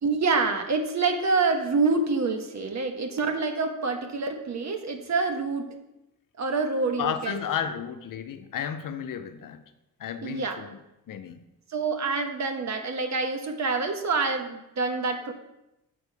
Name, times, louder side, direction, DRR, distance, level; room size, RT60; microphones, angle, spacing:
voice 1, 0.0-5.8 6.4-7.4 10.2-10.6 11.7-15.3, right 4 dB, 55° right, 1.2 m, -27 dB
voice 2, 7.0-9.6 10.0-10.8 11.1-11.4, left 8 dB, 75° left, 0.8 m, -32 dB
6.5 x 6.1 x 4.7 m
cardioid pair, 70°, 33 cm